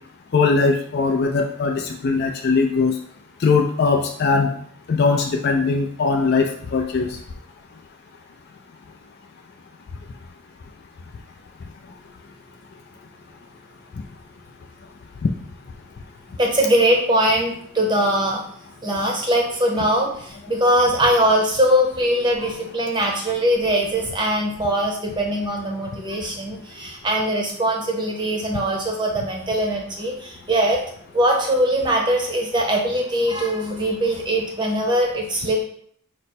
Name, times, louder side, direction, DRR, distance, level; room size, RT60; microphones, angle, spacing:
voice 1, 0.3-2.9 3.4-4.5 4.9-7.2 15.2-15.3, left 4 dB, 45° left, 2 dB, 0.3 m, -20 dB
voice 2, 16.4-18.4 18.8-30.8 31.1-35.6, right 1 dB, 20° right, 0 dB, 0.7 m, -21 dB
5.0 x 2.1 x 4.3 m, 0.63 s
head